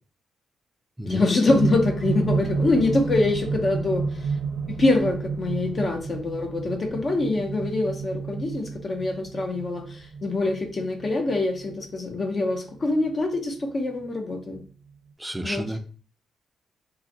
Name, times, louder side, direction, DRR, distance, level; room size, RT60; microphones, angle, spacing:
voice 1, 1.0-4.1 4.7-14.6 15.4-15.6, left 2 dB, 40° left, 3 dB, 0.6 m, -24 dB
sound 1, 1.5-13.6 14.5-14.6, right 4 dB, 70° right, 0.6 m, -30 dB
voice 2, 15.2-15.8, right 1 dB, 10° right, 7 dB, 0.4 m, -31 dB
3.8 x 2.1 x 2.7 m, 0.41 s
cardioid pair, 95°, 0 cm